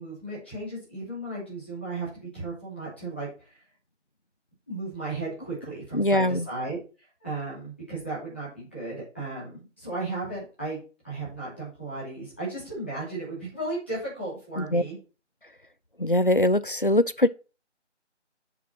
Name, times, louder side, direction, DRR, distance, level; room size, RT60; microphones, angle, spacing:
voice 1, 0.0-3.6 4.7-6.8 7.2-10.8 11.0-15.0, right 2 dB, 10° left, 2.9 m, -35 dB
voice 2, 5.9-6.5 14.6-14.8 16.0-17.3, left 1 dB, 45° left, 0.5 m, -22 dB
9.1 x 6.1 x 4.3 m
figure-of-eight pair, 175°, 36 cm